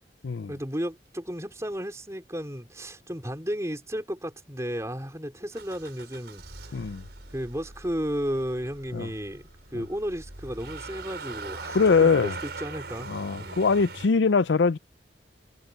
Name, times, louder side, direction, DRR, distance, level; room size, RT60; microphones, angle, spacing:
voice 1, 0.5-7.0 7.3-9.4 9.7-13.1 13.4-13.6, equal, 15° right, 4.4 m, -33 dB
Motor vehicle (road) / Engine starting, 5.5-14.1, right 3 dB, 65° right, 5.0 m, -41 dB
voice 2, 6.7-7.0 8.9-9.1 11.7-12.3 13.1-14.8, left 5 dB, 80° left, 0.5 m, -22 dB
head